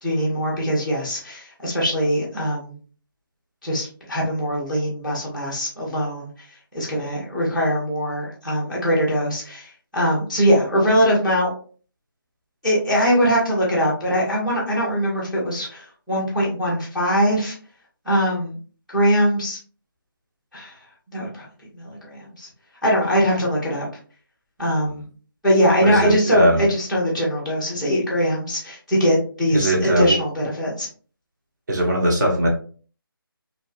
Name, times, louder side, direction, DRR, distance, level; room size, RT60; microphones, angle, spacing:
voice 1, 0.0-2.8 3.6-6.3 6.7-11.5 12.6-17.5 18.0-18.6 18.9-19.6 20.5-20.7 21.1-21.4 21.7-22.5 22.8-23.9 24.6-25.0 25.4-30.9, equal, ahead, -11 dB, 0.5 m, -22 dB
voice 2, 25.8-26.6 29.5-30.1 31.7-32.5, right 1 dB, 50° right, -1 dB, 1.0 m, -20 dB
2.5 x 2.5 x 2.3 m, 0.40 s
figure-of-eight pair, 160°, 12 cm